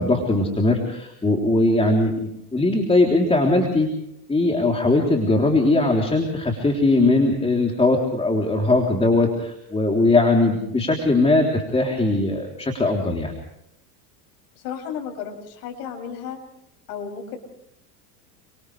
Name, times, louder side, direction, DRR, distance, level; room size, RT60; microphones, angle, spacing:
voice 1, 0.0-3.9 4.3-13.3, left 2 dB, 10° left, 0 dB, 3.5 m, -20 dB
voice 2, 14.6-16.4 16.9-17.4, left 7 dB, 75° left, 4 dB, 7.3 m, -33 dB
30.0 x 26.0 x 3.4 m, 0.78 s
supercardioid pair, 110°, 48 cm